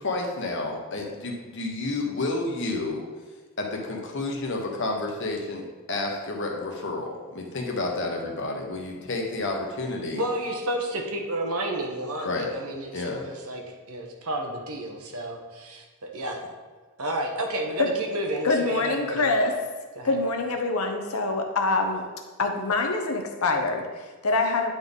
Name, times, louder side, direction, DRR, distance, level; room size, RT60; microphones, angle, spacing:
voice 1, 0.0-3.0 3.6-5.6 5.9-10.2 12.2-12.5 12.9-13.3, left 2 dB, 55° left, 1 dB, 1.2 m, -30 dB
voice 2, 10.1-13.6 13.9-16.4 17.0-19.2 20.0-20.2, right 1 dB, 80° right, 1 dB, 1.3 m, -31 dB
voice 3, 18.4-19.5 20.0-22.0 22.4-24.7, left 3 dB, 80° left, 4 dB, 0.9 m, -25 dB
10.0 x 4.1 x 3.6 m, 1.4 s
head